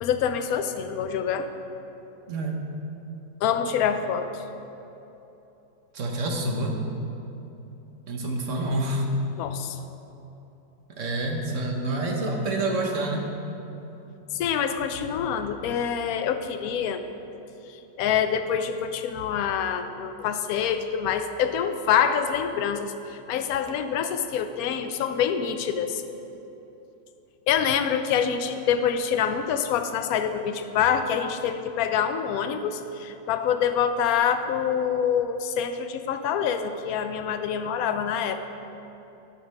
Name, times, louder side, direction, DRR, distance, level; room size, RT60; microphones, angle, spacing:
voice 1, 0.0-1.5 3.4-4.4 9.4-9.8 14.3-17.0 18.0-26.0 27.5-38.5, left 8 dB, 70° left, 8 dB, 0.9 m, -26 dB
voice 2, 2.3-2.6 5.9-6.7 8.1-9.0 11.0-13.3, right 2 dB, 50° right, 1 dB, 1.1 m, -27 dB
10.5 x 5.4 x 5.4 m, 3.0 s
omnidirectional pair, 1.9 m